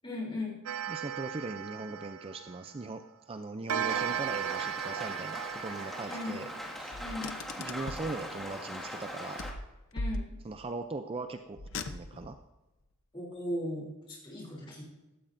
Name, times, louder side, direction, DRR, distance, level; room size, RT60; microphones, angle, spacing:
voice 1, 0.0-0.6 6.1-6.4 7.0-7.3 9.9-10.3 13.1-14.8, left 1 dB, 25° left, -3 dB, 3.3 m, -37 dB
Clock, 0.7-2.9 3.7-7.1, right 9 dB, 85° right, 0.5 m, -36 dB
voice 2, 0.9-6.5 6.8-7.0 7.6-9.5 10.4-12.4, right 3 dB, 25° right, 8 dB, 0.4 m, -40 dB
Rain, 3.8-9.5, equal, ahead, 1.9 m, -41 dB
Car, 6.9-8.1 9.4-10.7 11.6-12.4, left 2 dB, 60° left, 0.7 m, -39 dB
16.0 x 13.0 x 2.6 m, 1.0 s
head